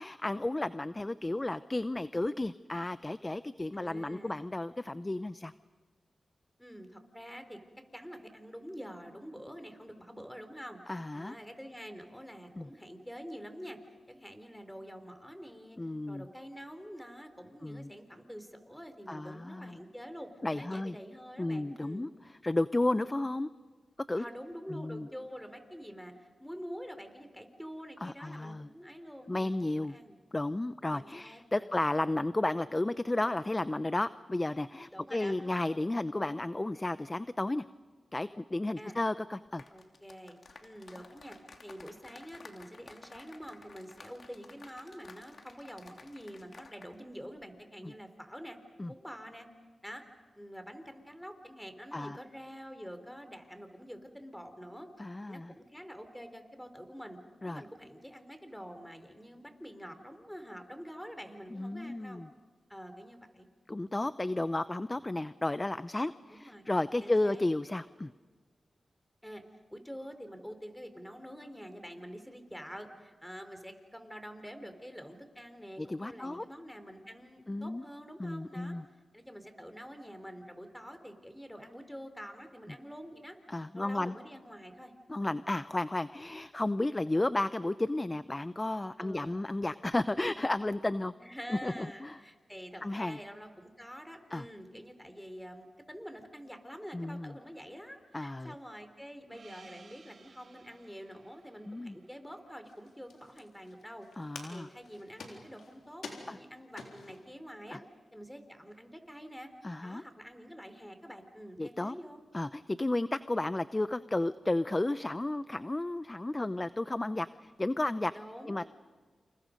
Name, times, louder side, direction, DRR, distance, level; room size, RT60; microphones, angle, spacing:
voice 1, 0.0-5.5 10.9-11.4 12.6-12.7 15.8-16.3 17.6-17.9 19.1-19.8 20.4-21.0 21.4-23.5 24.1-24.2 24.7-25.1 28.0-28.7 29.3-30.0 30.3-37.6 38.1-39.6 48.8-48.9 51.9-52.2 55.0-55.5 57.4-57.6 61.5-62.3 63.7-68.1 75.8-76.4 77.5-77.8 78.2-78.8 83.5-84.1 85.1-91.1 91.5-92.2 92.8-93.2 94.3-94.5 96.9-97.3 98.1-98.5 101.7-101.9 104.2-104.7 106.3-106.4 107.7-107.8 109.6-110.0 111.6-111.9 112.3-118.1 118.5-118.7, left 2 dB, 25° left, 14 dB, 0.6 m, -33 dB
voice 2, 3.7-4.5 6.6-7.6 7.9-13.8 14.1-15.8 16.1-22.1 24.2-29.6 29.9-30.2 30.9-31.8 34.9-35.3 35.7-36.0 38.8-38.9 39.7-41.4 41.6-48.6 48.9-49.5 49.8-50.0 50.4-54.9 55.3-57.2 57.5-62.2 62.7-63.5 66.4-66.7 67.0-67.4 69.2-69.4 69.7-78.8 79.1-83.4 83.7-84.9 85.2-85.4 89.0-89.3 91.2-104.1 104.5-107.8 108.1-109.5 109.8-112.2 118.1-118.6, equal, 5° left, 8 dB, 4.0 m, -47 dB
sound 1, 39.5-46.9 47.2-47.4, left 3 dB, 60° left, 2.7 m, -54 dB
Gong, 99.3-104.1, right 4 dB, 70° right, 2.4 m, -59 dB
sound 2, 102.6-107.3 108.0-108.1 108.3-108.8, left 4 dB, 85° left, 3.7 m, -49 dB
29.0 x 28.5 x 5.3 m, 1.5 s
cardioid pair, 45°, 0 cm